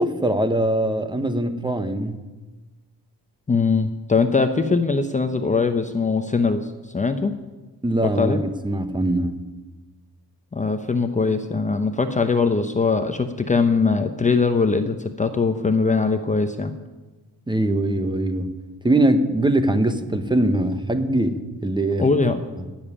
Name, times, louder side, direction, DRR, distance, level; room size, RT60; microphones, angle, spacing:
voice 1, 0.0-2.2 7.8-9.4 17.5-18.5 18.8-22.1, right 1 dB, 10° right, 9 dB, 1.0 m, -22 dB
voice 2, 3.5-7.3 8.0-8.4 10.5-16.7 22.0-22.4, left 4 dB, 20° left, 8 dB, 0.7 m, -21 dB
15.0 x 7.3 x 9.9 m, 1.2 s
cardioid pair, 120°, 38 cm